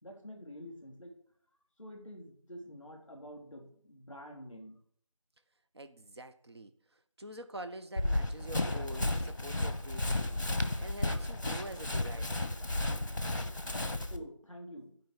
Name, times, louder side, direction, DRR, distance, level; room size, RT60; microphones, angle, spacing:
voice 1, 0.0-1.1 1.8-4.8 14.1-14.9, equal, 5° right, 0 dB, 2.8 m, -48 dB
voice 2, 5.7-12.5, right 1 dB, 55° right, 9 dB, 0.8 m, -46 dB
Run, 8.0-14.2, left 1 dB, 40° left, 1.2 m, -33 dB
12.0 x 5.4 x 8.6 m, 0.62 s
figure-of-eight pair, 180°, 17 cm